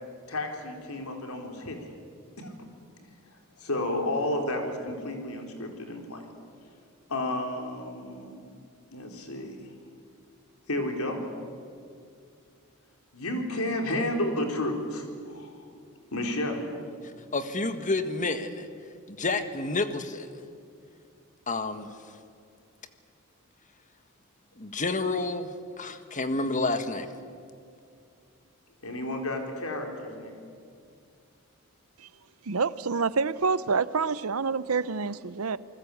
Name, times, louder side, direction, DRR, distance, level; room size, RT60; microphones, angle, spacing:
voice 1, 0.3-1.9 2.4-2.5 3.6-6.3 7.1-8.4 8.9-9.6 10.7-11.2 13.1-15.7 16.1-16.7 28.8-30.4, left 1 dB, 85° left, 4.3 m, -31 dB
voice 2, 17.3-18.7 19.1-20.3 21.5-21.9 24.6-27.1, left 3 dB, 35° left, 1.6 m, -29 dB
voice 3, 32.5-35.6, right 5 dB, 75° right, 0.8 m, -27 dB
28.0 x 20.5 x 8.6 m
head